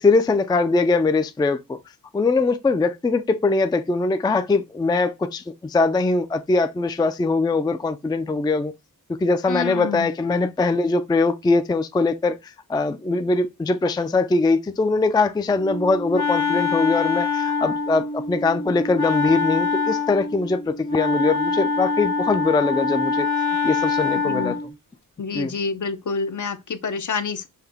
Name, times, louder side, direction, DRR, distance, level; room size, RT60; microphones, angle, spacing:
voice 1, 0.0-1.8 2.1-8.7 9.2-23.3 23.6-24.6 25.3-25.6, left 3 dB, 10° left, 0.3 m, -22 dB
voice 2, 9.5-10.1 24.2-24.6 25.2-27.5, left 5 dB, 55° left, 0.7 m, -28 dB
Wind instrument woodwind instrument, 15.6-24.7, left 4 dB, 90° left, 1.3 m, -24 dB
5.7 x 2.2 x 3.4 m
cardioid pair, 60°, 37 cm